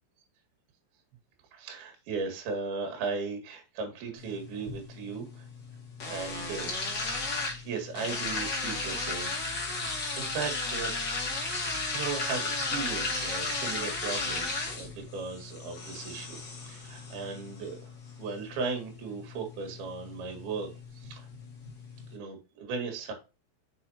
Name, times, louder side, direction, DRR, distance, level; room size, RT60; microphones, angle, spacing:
voice 1, 1.5-5.5 6.1-6.7 7.2-7.4 7.6-9.3 9.6-10.9 11.4-21.3 22.1-23.1, right 4 dB, 60° right, 4 dB, 3.4 m, -37 dB
sound 1, 4.2-22.2, left 3 dB, 85° left, 0.9 m, -35 dB
6.6 x 6.3 x 2.8 m, 0.30 s
omnidirectional pair, 5.7 m